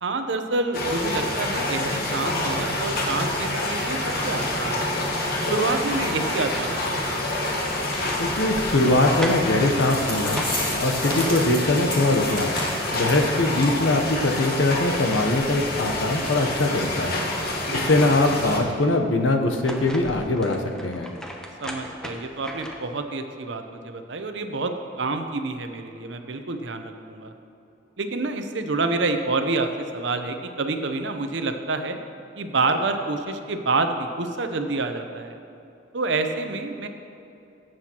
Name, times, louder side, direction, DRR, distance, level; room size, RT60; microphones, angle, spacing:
voice 1, 0.0-4.0 4.2-5.0 5.5-7.3 17.7-18.1 21.6-24.7 25.0-27.3 28.0-32.0 32.3-35.4 35.9-36.9, right 3 dB, 70° right, 6 dB, 0.7 m, -28 dB
sound 1, 0.7-18.6, left 1 dB, 55° left, 1.4 m, -27 dB
sound 2, 7.8-11.2 12.7-12.8 13.0-13.8 14.4-17.0 17.4-18.7 19.3-23.0, equal, 5° left, 0.8 m, -39 dB
voice 2, 8.2-10.4 10.8-12.5 12.9-17.3 17.7-21.1, left 2 dB, 80° left, 4 dB, 0.9 m, -22 dB
sound 3, 9.8-13.2 13.6-13.8 14.1-14.2 14.7-14.8, left 1 dB, 25° left, 2.3 m, -32 dB
17.0 x 7.7 x 3.0 m, 2.7 s
head